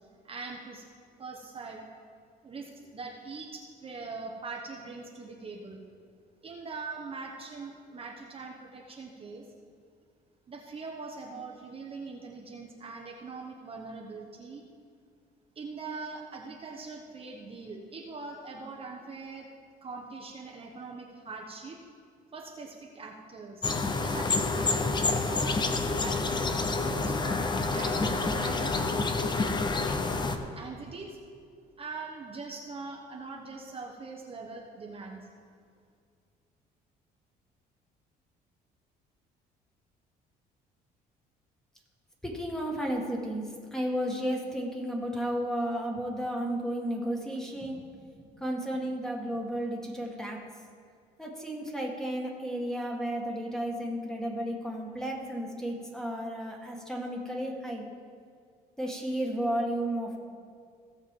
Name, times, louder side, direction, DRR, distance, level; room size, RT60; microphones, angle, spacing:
voice 1, 0.2-0.8 1.2-1.9 2.4-5.8 6.4-9.4 10.5-14.6 15.5-19.5 19.8-21.8 22.3-23.6 24.0-29.0 30.5-31.2 31.8-35.2, right 4 dB, 35° right, 0 dB, 1.1 m, -42 dB
sound 1, 23.6-30.4, left 3 dB, 25° left, 0.8 m, -28 dB
voice 2, 42.2-50.4 51.2-57.9 58.8-60.2, equal, 5° left, -1 dB, 1.9 m, -33 dB
16.5 x 6.6 x 3.8 m, 2.2 s
cardioid pair, 110°, 17 cm